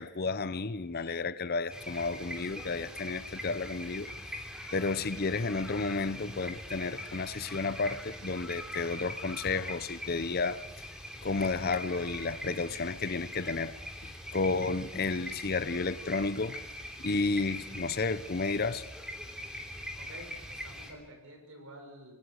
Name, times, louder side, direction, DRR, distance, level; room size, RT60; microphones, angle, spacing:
voice 1, 0.0-4.1 4.7-10.6 11.2-13.7 14.0-16.6 17.0-18.8, left 3 dB, 45° left, 0.7 m, -32 dB
sound 1, 1.7-20.9, left 1 dB, 5° right, 3.2 m, -42 dB
voice 2, 19.9-22.1, right 1 dB, 70° right, 6.5 m, -49 dB
27.5 x 19.0 x 6.5 m
head